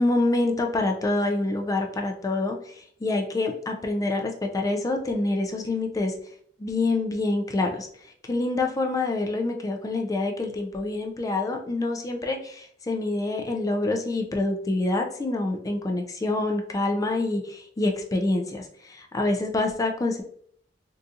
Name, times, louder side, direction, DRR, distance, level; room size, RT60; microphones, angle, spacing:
voice 1, 0.0-2.7 3.0-6.1 6.6-7.9 8.2-20.2, left 2 dB, 20° left, 3 dB, 0.3 m, -26 dB
3.6 x 2.7 x 2.5 m, 0.62 s
head